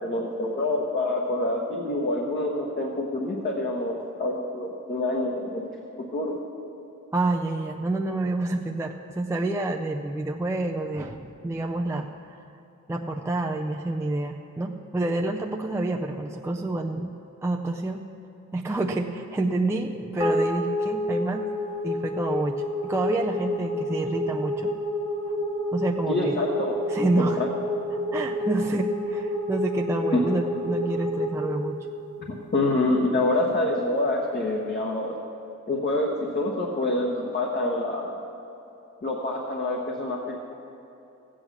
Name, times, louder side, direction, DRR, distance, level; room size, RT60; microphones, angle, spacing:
voice 1, 0.0-5.7 6.0-6.4 26.1-26.7 27.4-27.5 30.1-30.2 32.2-35.2 35.7-38.1 39.0-40.4, left 2 dB, 35° left, -1 dB, 1.1 m, -26 dB
voice 2, 7.1-12.1 12.9-17.1 17.4-18.0 18.5-21.5 21.8-24.7 25.7-26.4 26.9-27.4 28.1-31.8, right 2 dB, 10° right, 1 dB, 0.4 m, -28 dB
sound 1, 20.2-32.7, left 1 dB, 65° left, 2.3 m, -29 dB
15.0 x 8.9 x 6.2 m, 2.9 s
wide cardioid pair, 165°, 30 cm